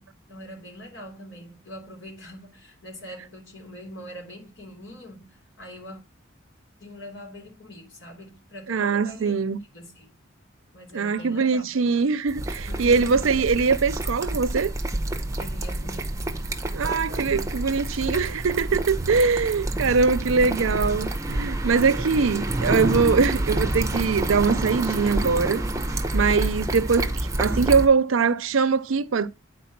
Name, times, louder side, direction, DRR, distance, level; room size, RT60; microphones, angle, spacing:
voice 1, 0.0-6.0 6.8-9.3 9.7-10.1 10.7-12.1 12.6-13.4 15.4-16.0 16.8-17.6 18.0-18.4 20.2-20.9 22.1-22.4 26.2-26.8, equal, 65° left, 3.2 m, -43 dB
voice 2, 8.7-9.6 10.9-14.7 16.7-25.6 26.1-27.1 27.4-29.3, right 5 dB, 85° right, 0.6 m, -22 dB
sound 1, 12.3-27.9, right 1 dB, 15° right, 0.7 m, -28 dB
9.4 x 4.4 x 5.9 m
head